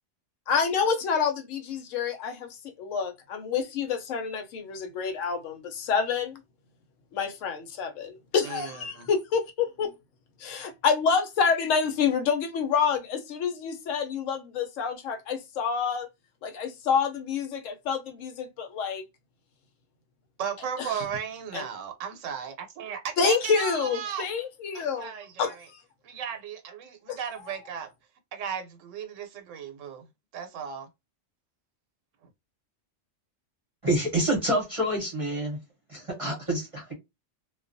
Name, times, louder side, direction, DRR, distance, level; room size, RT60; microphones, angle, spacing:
voice 1, 0.5-2.5 2.8-6.4 7.1-9.9 10.4-16.1 16.4-19.0 20.8-21.0 21.5-21.6 23.2-25.1 25.4-25.6 27.1-27.2, left 6 dB, 85° left, 1.0 m, -28 dB
voice 2, 8.4-9.1 20.4-24.3 24.7-25.7 26.0-27.9 28.3-30.1 30.3-30.9, right 7 dB, 80° right, 1.0 m, -35 dB
voice 3, 33.8-35.6 35.9-36.6, right 1 dB, 35° right, 0.7 m, -27 dB
2.3 x 2.3 x 2.5 m
omnidirectional pair, 1.3 m